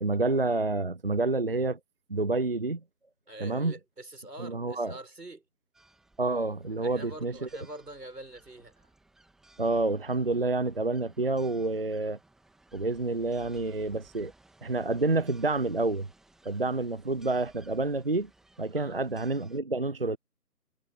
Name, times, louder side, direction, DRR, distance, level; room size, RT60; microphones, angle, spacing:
voice 1, 0.0-1.8 2.1-2.8 3.4-3.7 4.4-4.9 6.2-7.5 9.6-12.2 12.7-14.3 14.6-16.1 16.4-18.3 18.6-20.2, right 2 dB, 35° right, 0.7 m, -28 dB
voice 2, 3.3-5.4 6.8-8.9 18.7-19.0, right 1 dB, 80° right, 6.8 m, -45 dB
sound 1, 5.7-19.6, right 2 dB, ahead, 2.5 m, -60 dB
figure-of-eight pair, 160°, 48 cm